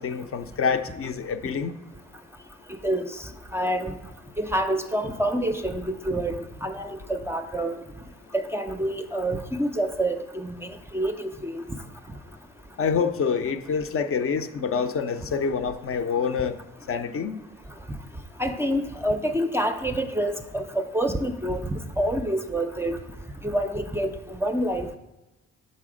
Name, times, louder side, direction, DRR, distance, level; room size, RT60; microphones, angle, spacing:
voice 1, 0.0-1.7 12.8-16.6 16.9-17.4, left 6 dB, 45° left, 8 dB, 0.6 m, -26 dB
voice 2, 2.8-3.9 4.4-7.8 8.3-11.6 18.4-21.7 22.0-23.0 23.4-25.0, right 1 dB, 10° right, 5 dB, 0.5 m, -27 dB
6.7 x 4.1 x 4.9 m, 1.0 s
cardioid pair, 90°, 30 cm